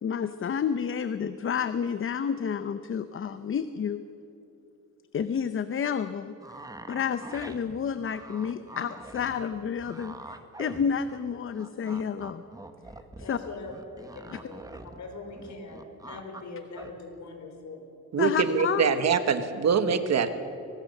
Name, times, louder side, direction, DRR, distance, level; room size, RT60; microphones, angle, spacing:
voice 1, 0.0-4.0 5.1-12.4 13.2-13.4 14.3-14.4 18.2-19.0, left 7 dB, 40° left, 12 dB, 0.7 m, -30 dB
sound 1, 6.4-11.3 11.5-15.0 15.3-16.4 16.7-16.9, right 2 dB, 10° right, 1.4 m, -44 dB
voice 2, 13.2-14.6 15.0-17.8, left 3 dB, 60° left, 4 dB, 4.3 m, -42 dB
voice 3, 18.1-20.3, right 6 dB, 55° right, 10 dB, 1.5 m, -24 dB
23.0 x 19.5 x 6.7 m, 3.0 s
cardioid pair, 125°, 31 cm